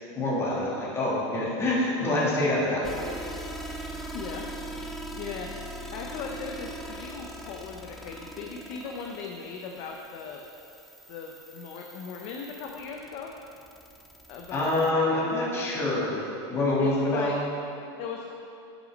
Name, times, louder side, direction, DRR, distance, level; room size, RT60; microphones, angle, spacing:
voice 1, 0.2-3.0 14.5-17.3, left 1 dB, 20° left, -5 dB, 1.8 m, -26 dB
sound 1, 2.8-14.9, right 1 dB, ahead, 0.4 m, -41 dB
voice 2, 4.1-4.4 5.1-10.4 11.1-13.3 14.3-15.1 16.8-17.3 18.0-18.4, left 5 dB, 45° left, 2 dB, 0.6 m, -38 dB
9.0 x 6.2 x 5.1 m, 2.7 s
supercardioid pair, 160°, 14 cm